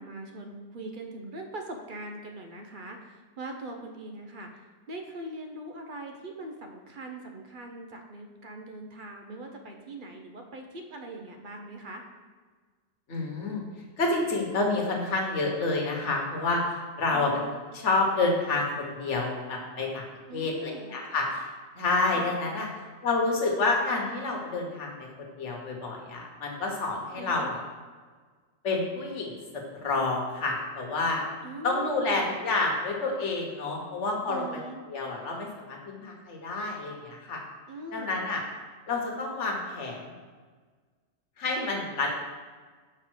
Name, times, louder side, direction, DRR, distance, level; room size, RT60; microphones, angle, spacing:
voice 1, 0.0-4.6 4.9-12.0 17.1-17.5 20.3-21.0 22.1-22.3 27.2-27.5 31.4-32.3 34.3-34.8 37.7-38.2, right 2 dB, 45° right, 3 dB, 0.7 m, -41 dB
voice 2, 13.1-13.6 14.0-17.3 17.7-20.0 20.3-21.5 21.7-22.7 23.0-24.9 25.4-27.6 28.6-29.3 29.7-31.2 31.6-34.6 34.9-37.4 37.9-38.4 38.9-40.1 41.4-42.1, left 3 dB, 60° left, 0 dB, 1.5 m, -29 dB
5.5 x 4.4 x 6.3 m, 1.5 s
omnidirectional pair, 1.4 m